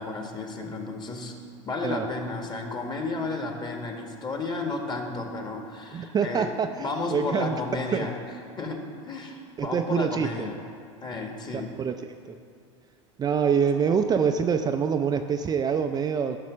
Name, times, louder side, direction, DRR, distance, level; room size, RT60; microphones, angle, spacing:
voice 1, 0.0-1.3 1.6-6.5 6.8-8.2 8.5-10.6 11.0-11.7, left 3 dB, 30° left, 3 dB, 1.5 m, -32 dB
voice 2, 5.9-7.6 7.9-8.1 9.6-10.5 11.5-12.4 13.2-16.4, right 6 dB, 25° right, 6 dB, 0.4 m, -26 dB
10.5 x 6.2 x 6.1 m, 2.4 s
hypercardioid pair, 90°, 16 cm